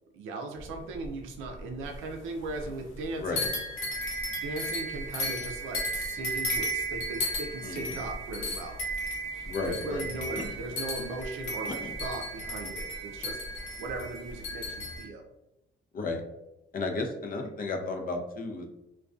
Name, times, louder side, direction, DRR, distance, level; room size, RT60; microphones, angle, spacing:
voice 1, 0.1-3.5 4.3-8.8 9.3-15.2 17.3-17.4, right 2 dB, 90° right, 3 dB, 0.4 m, -38 dB
sound 1, 0.6-2.1 2.4-3.1 3.4-15.0, equal, 90° left, 0.6 m, -34 dB
voice 2, 7.6-7.9 9.4-10.0 10.5-10.6 11.8-11.9 15.9-16.2 16.7-18.6, left 3 dB, 45° left, 3 dB, 0.5 m, -33 dB
2.4 x 2.2 x 2.3 m, 0.92 s
cardioid pair, 90°, 20 cm